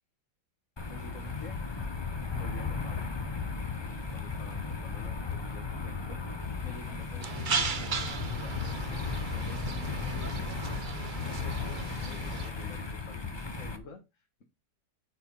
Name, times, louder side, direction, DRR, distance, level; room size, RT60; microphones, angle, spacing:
sound 1, 0.8-13.8, left 4 dB, 25° left, 0.6 m, -35 dB
voice 1, 0.9-1.6 2.3-3.1 3.8-6.2 6.6-9.0 9.3-14.4, left 3 dB, 45° left, 1.6 m, -49 dB
sound 2, 7.2-12.5, right 5 dB, 40° right, 0.7 m, -36 dB
8.7 x 4.6 x 5.5 m
omnidirectional pair, 1.9 m